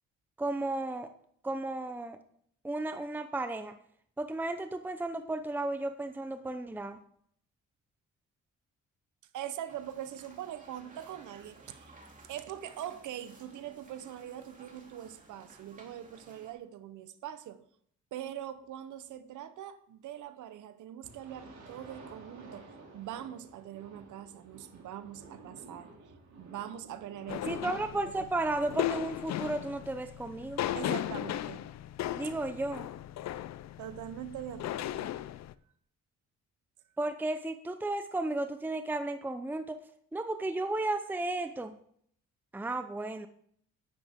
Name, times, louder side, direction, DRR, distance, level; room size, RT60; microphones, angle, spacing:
voice 1, 0.4-1.1 1.4-2.2 2.6-3.8 4.2-7.0 27.5-30.6 32.1-32.9 37.0-39.8 40.1-41.7 42.5-43.3, right 2 dB, 5° right, 9 dB, 0.7 m, -34 dB
voice 2, 9.3-12.0 12.3-17.6 18.1-25.9 26.4-28.3 30.7-31.7 33.8-35.2, right 11 dB, 80° right, 11 dB, 1.0 m, -43 dB
sound 1, 9.7-16.5, right 2 dB, 25° right, 2.8 m, -56 dB
sound 2, 21.0-28.0, right 3 dB, 65° right, 3.2 m, -53 dB
sound 3, 27.3-35.5, left 13 dB, 60° left, 0.5 m, -37 dB
10.5 x 9.6 x 3.7 m, 0.63 s
cardioid pair, 90°, 30 cm